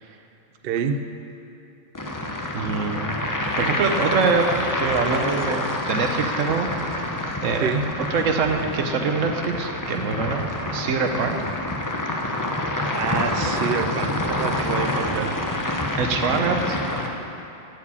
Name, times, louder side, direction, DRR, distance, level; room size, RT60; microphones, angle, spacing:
voice 1, 0.6-1.1 7.6-7.9 12.9-15.4, right 6 dB, 60° right, 8 dB, 0.6 m, -27 dB
sound 1, 1.9-17.1, left 1 dB, 20° left, 0.6 m, -27 dB
voice 2, 2.5-3.1 3.6-4.4 4.8-6.9 7.4-7.7 8.0-10.4 10.7-11.3 13.4-13.5 16.0-16.8, right 5 dB, 80° right, 4 dB, 1.2 m, -24 dB
11.5 x 4.8 x 8.4 m, 2.8 s
omnidirectional pair, 1.3 m